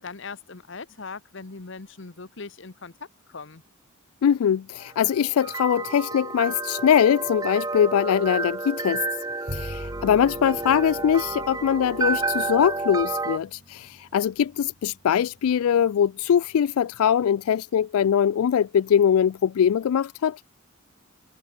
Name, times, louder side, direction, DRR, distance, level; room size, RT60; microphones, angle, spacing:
voice 1, 0.0-2.9 3.3-3.6, left 4 dB, 60° left, 1.1 m, -40 dB
voice 2, 4.2-9.0 9.5-20.4, left 8 dB, 90° left, 0.3 m, -22 dB
sound 1, 4.8-13.4, right 3 dB, 15° right, 0.8 m, -30 dB
Bowed string instrument, 9.5-15.9, equal, 50° right, 4.3 m, -43 dB
head